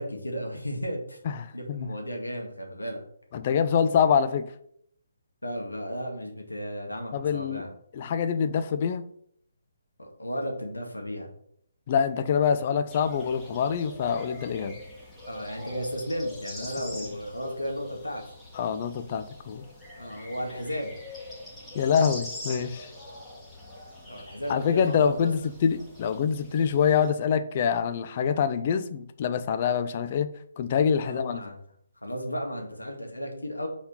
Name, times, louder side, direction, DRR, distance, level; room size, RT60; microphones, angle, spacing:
voice 1, 0.0-1.2 1.5-3.0 5.4-7.7 10.0-11.3 15.3-18.2 20.0-20.9 24.1-25.3 31.0-31.6 32.0-33.7, equal, 85° left, 2 dB, 1.8 m, -34 dB
voice 2, 1.3-1.9 3.3-4.5 7.1-7.6 7.9-9.0 11.9-14.8 18.5-19.6 21.7-22.9 24.5-30.3 30.6-31.4, left 7 dB, 35° left, 11 dB, 0.6 m, -25 dB
sound 1, 12.9-27.1, left 1 dB, 5° left, 1.9 m, -43 dB
5.7 x 4.2 x 5.6 m, 0.68 s
figure-of-eight pair, 140°, 0 cm